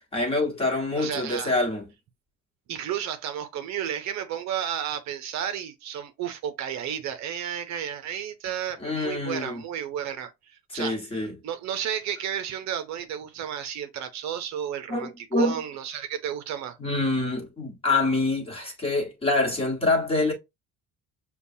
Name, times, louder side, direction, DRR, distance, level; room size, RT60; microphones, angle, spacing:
voice 1, 0.1-1.9 8.8-9.6 10.7-11.4 14.9-15.6 16.8-20.3, left 2 dB, 15° left, 1.4 m, -26 dB
voice 2, 1.0-1.5 2.7-11.0 11.4-16.8, right 9 dB, 55° right, 0.6 m, -32 dB
6.8 x 2.3 x 2.7 m
cardioid pair, 175°, 34 cm